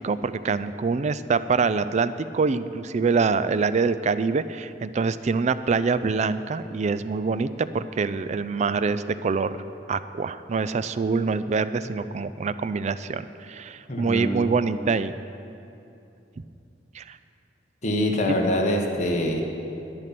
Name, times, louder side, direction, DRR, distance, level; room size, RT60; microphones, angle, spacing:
voice 1, 0.0-9.6 9.9-15.1 16.9-17.2, right 4 dB, 40° right, 13 dB, 0.4 m, -25 dB
voice 2, 13.9-14.5 17.8-19.4, left 1 dB, 40° left, 1 dB, 1.5 m, -24 dB
11.0 x 11.0 x 5.9 m, 2.7 s
head